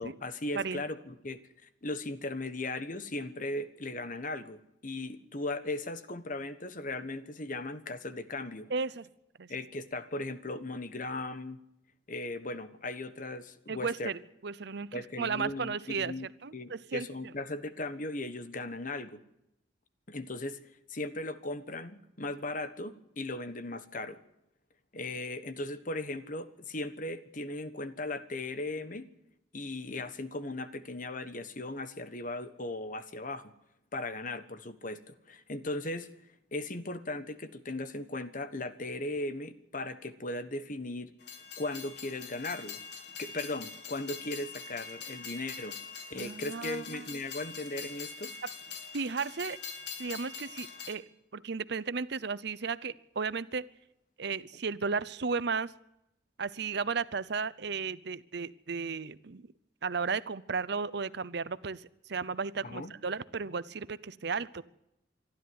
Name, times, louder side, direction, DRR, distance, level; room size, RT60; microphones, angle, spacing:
voice 1, 0.0-8.7 9.5-11.6 12.1-14.1 14.9-16.3 16.5-19.2 20.1-20.6 20.9-24.2 24.9-29.1 29.5-33.5 33.9-36.1 36.5-41.1 41.6-42.8 43.2-45.7 46.1-48.3 62.6-62.9, left 2 dB, 45° left, 11 dB, 1.3 m, -37 dB
voice 2, 8.7-9.1 9.4-9.5 13.7-16.1 16.4-17.3 46.1-47.2 48.4-48.5 48.9-49.6 50.0-51.0 51.3-53.7 54.2-55.7 56.4-59.5 59.8-64.6, right 5 dB, 60° right, 17 dB, 0.7 m, -34 dB
Train, 41.2-51.0, left 6 dB, 65° left, 2.0 m, -44 dB
24.0 x 13.0 x 9.5 m, 0.85 s
head